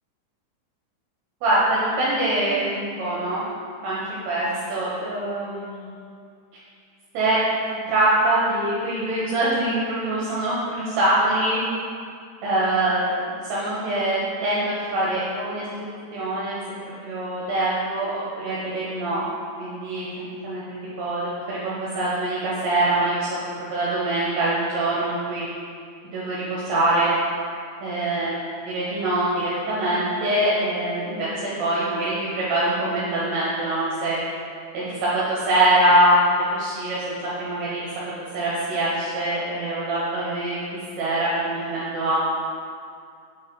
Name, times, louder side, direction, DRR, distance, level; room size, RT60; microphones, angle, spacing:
voice 1, 1.4-3.4 3.8-5.9 7.1-7.4 7.9-11.6 12.4-15.6 16.1-16.6 17.0-19.3 19.6-23.3 23.7-25.5 26.1-27.1 27.8-28.3 28.6-34.2 34.7-36.2 36.5-37.8 38.3-40.6 41.0-42.2, right 1 dB, 70° right, -8 dB, 3.1 m, -24 dB
7.9 x 5.6 x 4.8 m, 2.3 s
omnidirectional pair, 5.2 m